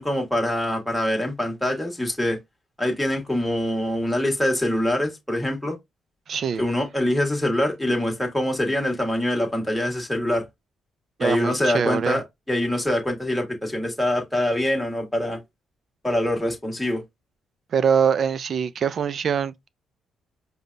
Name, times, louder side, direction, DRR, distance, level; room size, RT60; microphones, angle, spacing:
voice 1, 0.0-2.4 2.8-5.7 6.6-10.4 11.2-15.4 16.0-17.0, left 1 dB, 5° left, 1.4 m, -24 dB
voice 2, 6.3-6.6 11.2-12.2 17.7-19.7, right 7 dB, 55° right, 0.4 m, -23 dB
5.0 x 2.2 x 2.6 m
cardioid pair, 90°, 0 cm